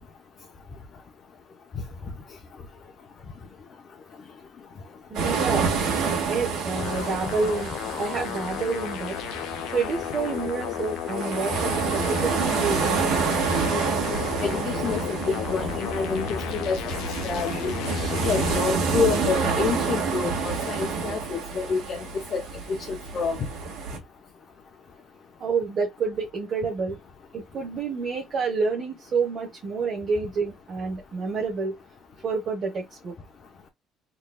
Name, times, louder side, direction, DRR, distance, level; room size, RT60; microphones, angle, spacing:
voice 1, 5.1-5.7 6.3-7.7 8.0-9.2 9.7-13.4 17.9-18.2 25.4-27.0 27.3-31.8 32.2-33.1, right 4 dB, 40° right, 1.2 m, -29 dB
sound 1, 5.1-24.0, right 5 dB, 75° right, 2.1 m, -28 dB
sound 2, 6.7-18.6, left 12 dB, 80° left, 0.5 m, -34 dB
voice 2, 14.4-17.7 18.2-22.4 22.7-23.4, left 5 dB, 40° left, 0.8 m, -28 dB
4.1 x 3.2 x 2.3 m
cardioid pair, 140°, 0 cm